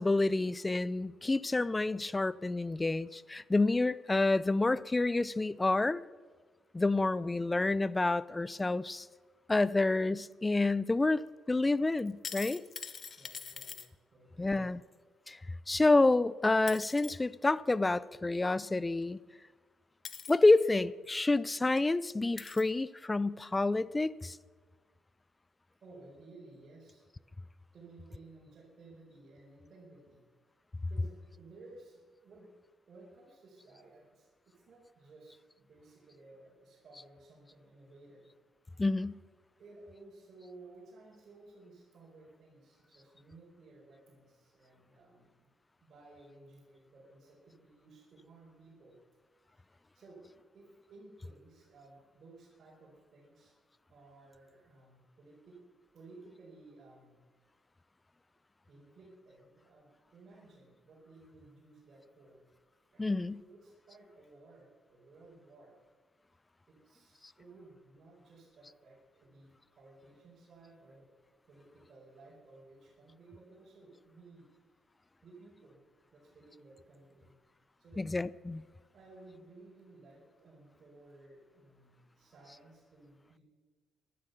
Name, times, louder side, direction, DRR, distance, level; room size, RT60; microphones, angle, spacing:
voice 1, 0.0-6.0 6.7-9.1 9.5-12.6 14.4-14.8 15.3-15.4 15.7-19.2 20.3-24.4 38.8-39.2 63.0-63.4 78.0-78.6, left 2 dB, 20° left, 0.5 m, -28 dB
sound 1, 12.0-13.9 16.1-16.2 16.7-17.2 19.0-19.1 20.0-20.3 21.3-21.4 21.8-21.9 22.4-22.7 23.5-23.6, left 6 dB, 50° left, 1.0 m, -44 dB
voice 2, 13.2-13.8 14.1-14.8 25.8-27.1 27.7-30.2 30.9-32.5 32.9-38.2 39.6-45.5 45.8-49.0 49.5-50.2 50.5-53.5 53.9-55.6 55.9-57.2 58.7-62.5 62.9-65.8 66.7-71.1 71.5-74.5 75.2-75.8 76.1-77.3 77.8-78.1 78.9-83.4, right 2 dB, 55° right, 4.6 m, -57 dB
14.0 x 12.0 x 6.8 m
supercardioid pair, 75°, 0 cm